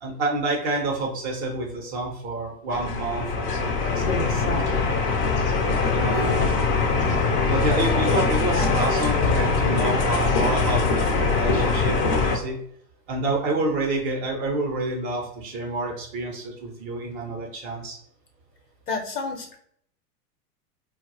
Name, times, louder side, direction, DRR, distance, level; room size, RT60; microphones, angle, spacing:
voice 1, 0.0-5.1 5.9-6.5 7.5-12.6 13.1-18.0, right 2 dB, 25° right, 0 dB, 0.5 m, -28 dB
sound 1, 2.7-12.4, left 4 dB, 35° left, 0.5 m, -22 dB
voice 2, 6.1-6.5 13.5-13.6 18.9-19.6, left 4 dB, 75° left, 3 dB, 0.9 m, -32 dB
4.3 x 2.0 x 2.6 m, 0.66 s
figure-of-eight pair, 95°, 49 cm